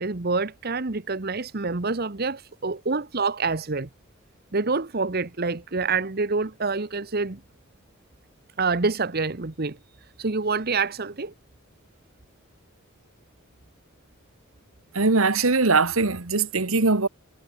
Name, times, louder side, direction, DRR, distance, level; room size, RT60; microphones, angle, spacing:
voice 1, 0.0-3.9 4.5-7.4 8.6-9.8 10.2-11.3, right 4 dB, 50° right, 1.1 m, -27 dB
voice 2, 14.9-17.1, right 3 dB, 90° right, 1.7 m, -21 dB
head